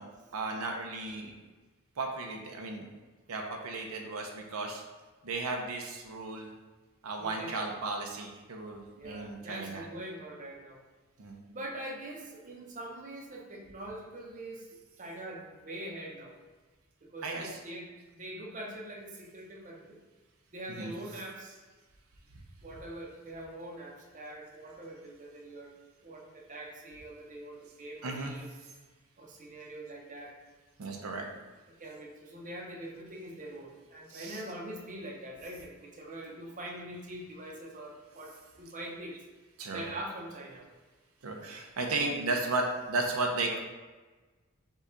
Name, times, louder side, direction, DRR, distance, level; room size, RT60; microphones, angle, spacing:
voice 1, 0.3-1.3 2.0-2.9 3.3-4.8 5.2-6.5 7.0-9.9 11.2-11.4 17.2-17.6 20.7-20.9 28.0-28.4 30.8-31.3 34.1-34.4 39.6-39.9 41.2-43.6, right 3 dB, 75° right, 2 dB, 0.6 m, -34 dB
voice 2, 7.2-7.8 8.9-10.8 11.5-14.7 15.0-16.4 17.0-20.0 20.5-21.6 22.6-25.8 26.0-28.5 29.2-30.4 31.8-39.2 39.7-40.7, right 1 dB, 35° right, -1 dB, 0.7 m, -43 dB
5.4 x 2.3 x 3.7 m, 1.3 s
head